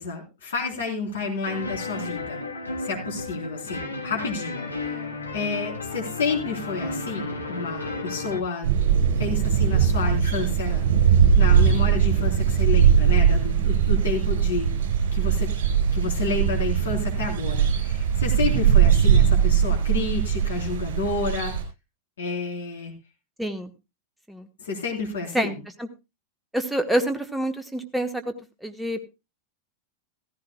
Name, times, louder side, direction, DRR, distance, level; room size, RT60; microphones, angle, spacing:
voice 1, 0.0-2.4 2.8-5.0 5.3-8.7 9.2-10.9 11.3-15.5 15.9-21.5 22.2-22.9 24.6-25.6, left 4 dB, 65° left, 0 dB, 3.8 m, -30 dB
sound 1, 1.4-8.4, left 3 dB, 80° left, 1.6 m, -33 dB
sound 2, 8.6-21.6, right 8 dB, 60° right, 4.9 m, -20 dB
voice 2, 23.4-23.7 24.3-24.5 25.3-25.5 25.8-25.9 26.5-28.2 28.6-29.1, right 1 dB, 5° right, 7 dB, 1.3 m, -26 dB
15.5 x 14.5 x 2.3 m, 0.26 s
figure-of-eight pair, 90°, 0 cm